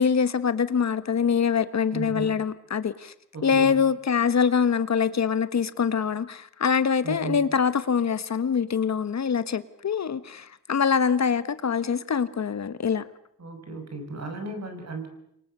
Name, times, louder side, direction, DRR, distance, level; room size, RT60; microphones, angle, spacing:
voice 1, 0.0-3.1 3.4-13.0, left 6 dB, 55° left, 1.4 m, -24 dB
voice 2, 1.9-2.4 3.3-3.8 7.0-7.4 13.4-15.1, right 3 dB, 50° right, 6.3 m, -35 dB
29.0 x 24.0 x 6.9 m
wide cardioid pair, 130°, 33 cm